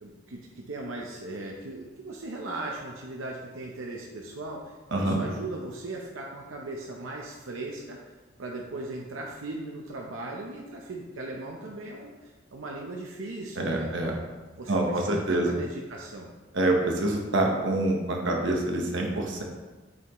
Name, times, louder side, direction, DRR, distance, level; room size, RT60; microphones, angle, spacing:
voice 1, 0.0-8.0 8.4-14.2 14.6-16.3, right 2 dB, 90° right, -1 dB, 0.8 m, -38 dB
voice 2, 4.9-5.2 13.6-14.1 14.7-15.6 16.5-19.4, right 1 dB, 65° right, 1 dB, 1.2 m, -26 dB
7.9 x 5.7 x 3.1 m, 1.2 s
head